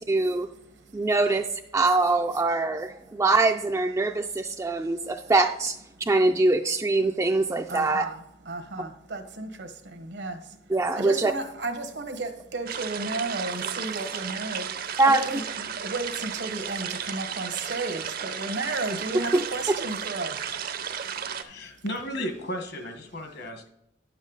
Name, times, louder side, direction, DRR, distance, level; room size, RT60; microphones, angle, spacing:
voice 1, 0.1-0.5 0.9-1.5 1.7-8.0 10.7-11.3 15.0-15.2 19.3-19.4, right 2 dB, 15° right, 0.3 m, -23 dB
voice 2, 7.7-21.7, right 3 dB, 75° right, 1.1 m, -34 dB
sound 1, 12.7-21.4, right 7 dB, 55° right, 0.6 m, -34 dB
voice 3, 21.4-23.7, equal, 65° left, 1.3 m, -34 dB
10.0 x 7.3 x 3.9 m
head